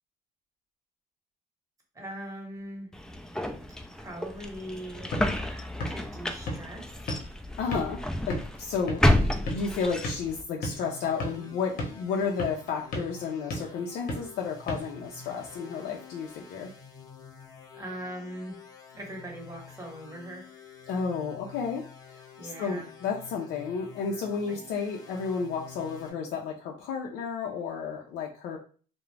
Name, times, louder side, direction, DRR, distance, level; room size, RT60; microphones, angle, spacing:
voice 1, 1.9-2.9 4.0-5.1 5.9-6.9 17.8-18.6 18.9-20.5 22.4-22.9 24.5-24.6, right 1 dB, 20° right, 0 dB, 0.9 m, -40 dB
sound 1, 2.9-10.4, left 1 dB, 5° left, 0.3 m, -30 dB
sound 2, 4.8-15.6, left 1 dB, 60° left, 0.8 m, -39 dB
voice 2, 7.6-16.7 20.9-21.8 22.1-28.6, left 5 dB, 75° left, 1 dB, 0.5 m, -32 dB
sound 3, 10.7-26.1, left 5 dB, 20° left, 0.7 m, -49 dB
2.4 x 2.0 x 3.1 m, 0.39 s
cardioid pair, 110°, 17 cm